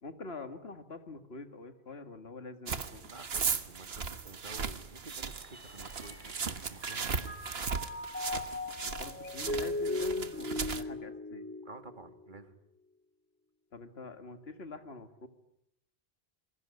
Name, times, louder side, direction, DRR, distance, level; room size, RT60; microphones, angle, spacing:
voice 1, 0.0-3.1 8.8-11.5 13.7-15.3, left 3 dB, 75° left, 9 dB, 2.3 m, -45 dB
sound 1, 2.7-10.8, right 5 dB, 70° right, 1.6 m, -37 dB
voice 2, 3.1-7.4 11.6-12.5, right 2 dB, 50° right, 9 dB, 2.2 m, -50 dB
sound 2, 5.2-7.4, equal, 10° right, 5.7 m, -58 dB
Mallet percussion, 5.5-6.5 6.8-12.2, left 2 dB, 10° left, 2.0 m, -38 dB
27.0 x 22.0 x 9.8 m, 0.78 s
omnidirectional pair, 1.1 m